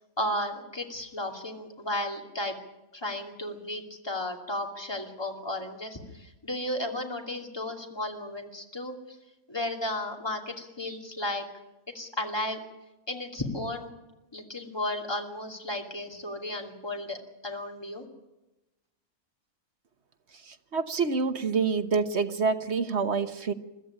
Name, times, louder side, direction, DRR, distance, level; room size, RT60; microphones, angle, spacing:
voice 1, 0.2-2.5 2.9-9.0 9.5-11.4 11.9-12.6 13.1-13.9 14.3-17.2 17.4-18.0, left 1 dB, 15° left, 2 dB, 2.7 m, -34 dB
voice 2, 20.5-23.5, right 5 dB, 50° right, 9 dB, 1.3 m, -27 dB
22.5 x 14.0 x 9.9 m, 1.0 s
omnidirectional pair, 1.5 m